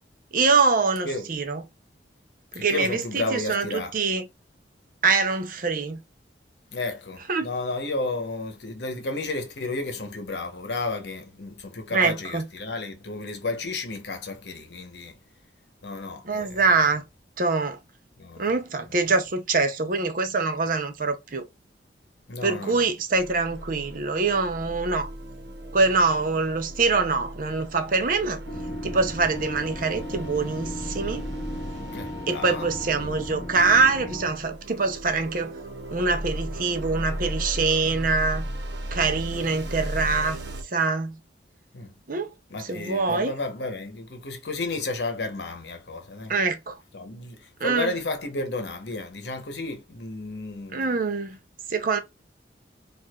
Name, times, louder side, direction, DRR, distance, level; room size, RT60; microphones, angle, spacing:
voice 1, 0.3-1.6 2.5-4.3 5.0-6.0 7.3-7.5 11.9-12.4 16.2-17.0 17.4-17.8 18.4-21.5 22.4-25.1 25.7-28.4 28.8-31.3 32.3-35.5 35.9-38.5 38.9-40.4 40.7-41.2 42.1-42.3 42.6-43.3 46.3-46.8 47.6-47.9 50.7-51.4 51.7-52.0, right 4 dB, 50° right, 0.6 m, -24 dB
voice 2, 2.6-4.0 6.7-15.1 15.8-16.6 18.2-18.5 22.3-22.8 31.9-32.7 41.7-41.9 42.5-46.3 46.9-51.0, left 2 dB, 70° left, 0.9 m, -32 dB
sound 1, 23.1-40.6, right 1 dB, 75° right, 1.0 m, -36 dB
sound 2, 28.5-34.3, equal, 35° left, 0.8 m, -36 dB
4.6 x 2.5 x 2.3 m
head